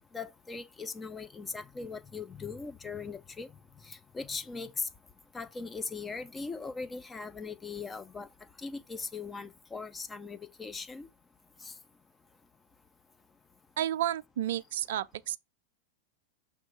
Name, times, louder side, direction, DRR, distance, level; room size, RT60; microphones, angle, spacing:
voice 1, 0.1-3.5 3.8-4.9 5.3-8.3 8.6-11.1 11.6-11.7, left 4 dB, 15° left, 0.8 m, -39 dB
voice 2, 13.8-15.4, right 12 dB, 65° right, 0.4 m, -31 dB
6.2 x 3.3 x 4.6 m
figure-of-eight pair, 95°, 0 cm